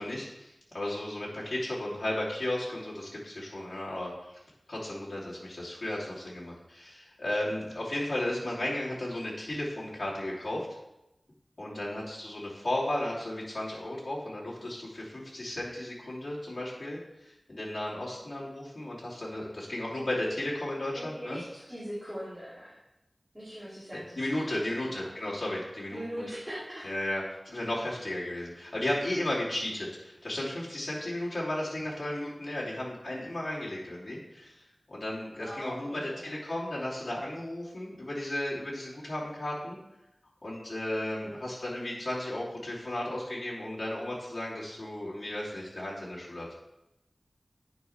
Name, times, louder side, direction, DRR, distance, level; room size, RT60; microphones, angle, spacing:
voice 1, 0.0-4.4 4.7-10.7 11.6-21.4 23.9-26.1 26.8-39.8 40.4-46.5, left 1 dB, 55° left, -6 dB, 2.9 m, -34 dB
voice 2, 11.6-12.1 20.9-22.8 23.3-24.2 24.4-25.1 25.9-26.9 35.4-36.3 41.1-41.5, equal, 15° right, -10 dB, 2.7 m, -41 dB
9.3 x 5.8 x 3.3 m, 0.90 s
wide cardioid pair, 65°, 0 cm